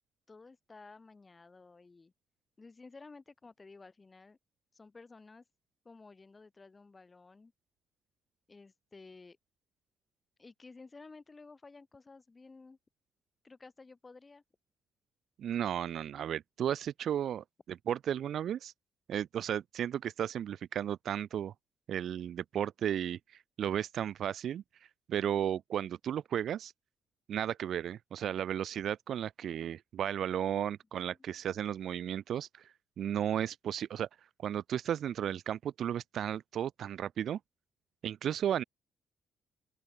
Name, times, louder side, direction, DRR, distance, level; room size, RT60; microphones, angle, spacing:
voice 1, 0.3-2.1 2.6-4.4 4.7-5.4 5.8-7.5 8.5-9.4 10.4-12.8 13.4-14.4 31.2-31.4, left 3 dB, 25° left, 4.5 m, -54 dB
voice 2, 15.4-18.7 19.1-21.5 21.9-23.2 23.6-24.6 25.1-26.7 27.3-32.5 33.0-34.1 34.4-37.4 38.0-38.6, right 10 dB, 65° right, 0.3 m, -34 dB
open air
cardioid pair, 90°, 0 cm